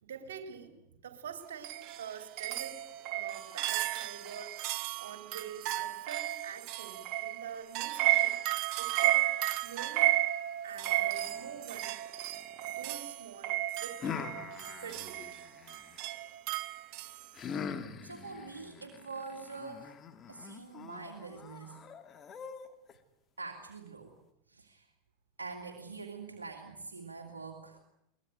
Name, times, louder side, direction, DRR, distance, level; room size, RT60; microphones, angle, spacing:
voice 1, 0.0-0.8 1.0-2.8 3.0-8.4 8.8-10.1 10.6-12.0 12.6-14.3 14.8-15.3, right 7 dB, 70° right, 7 dB, 3.5 m, -46 dB
sound 1, 1.6-17.3, right 15 dB, 50° right, 1.2 m, -33 dB
sound 2, 10.8-13.0 14.0-16.1 17.3-22.9, left 6 dB, 30° left, 2.4 m, -44 dB
voice 2, 18.0-19.9 20.3-21.8 23.4-24.1 24.5-24.8 25.4-27.8, right 4 dB, 90° right, 2 dB, 2.4 m, -44 dB
23.0 x 20.5 x 9.4 m, 0.84 s
figure-of-eight pair, 85°, 0 cm